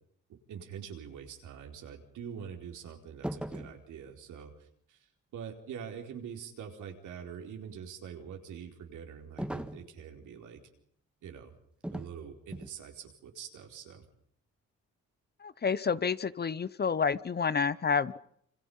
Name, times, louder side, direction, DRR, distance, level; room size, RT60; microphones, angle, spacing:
voice 1, 0.5-5.1 5.3-10.6 11.2-11.5 11.9-14.0, right 7 dB, 80° right, 3 dB, 4.5 m, -44 dB
sound 1, 3.2-3.8 9.4-9.9 11.8-12.2 12.5-12.8, right 1 dB, 5° right, 1.9 m, -38 dB
voice 2, 15.4-18.2, left 5 dB, 35° left, 17 dB, 0.9 m, -29 dB
27.5 x 26.0 x 5.7 m, 0.68 s
cardioid pair, 90°, 30 cm